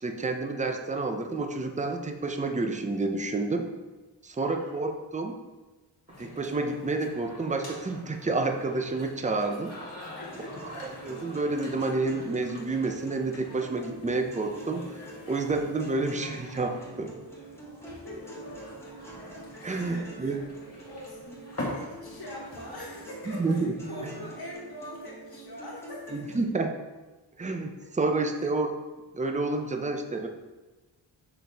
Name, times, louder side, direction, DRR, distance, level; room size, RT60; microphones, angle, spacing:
voice 1, 0.0-3.7 4.2-5.4 6.2-9.7 10.7-14.9 15.3-17.2 19.6-20.4 23.3-23.7 26.1-26.7 27.4-28.7 29.1-30.3, right 3 dB, 15° right, 4 dB, 0.6 m, -29 dB
voice 2, 4.4-4.8 10.2-10.7 18.0-19.0 19.5-20.4 20.9-26.4, left 1 dB, 50° left, -5 dB, 2.0 m, -44 dB
sound 1, 6.1-24.5, left 1 dB, 35° left, 1.9 m, -44 dB
sound 2, 10.3-26.3, right 2 dB, 5° left, 1.5 m, -46 dB
6.3 x 6.0 x 3.5 m, 1.2 s
wide cardioid pair, 130°, 46 cm